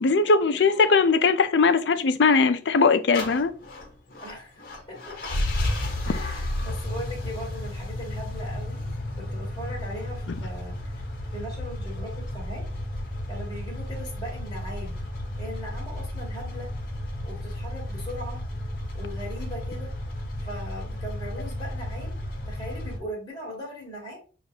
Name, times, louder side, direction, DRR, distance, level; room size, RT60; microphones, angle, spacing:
voice 1, 0.0-3.5, left 4 dB, 75° left, 0.5 m, -20 dB
sound 1, 3.1-23.0, left 1 dB, 55° left, 1.0 m, -33 dB
voice 2, 4.2-4.6 4.9-5.2 6.0-8.9 9.2-12.6 13.3-15.0 15.4-16.7 17.2-18.4 18.9-19.9 20.4-22.2 22.4-24.2, equal, 25° left, 1.6 m, -39 dB
6.4 x 2.5 x 2.8 m
head